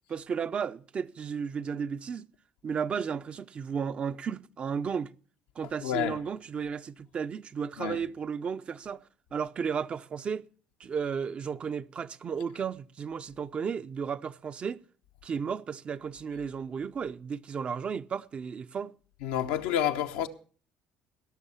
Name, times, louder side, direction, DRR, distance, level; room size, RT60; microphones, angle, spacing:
voice 1, 0.1-2.3 2.6-5.1 5.6-9.0 9.3-10.5 10.8-14.8 15.2-18.9, right 6 dB, 40° right, 0.5 m, -34 dB
voice 2, 5.8-6.2 7.8-8.0 19.2-20.3, left 10 dB, 90° left, 0.9 m, -29 dB
16.5 x 6.6 x 7.0 m
supercardioid pair, 75°, 3 cm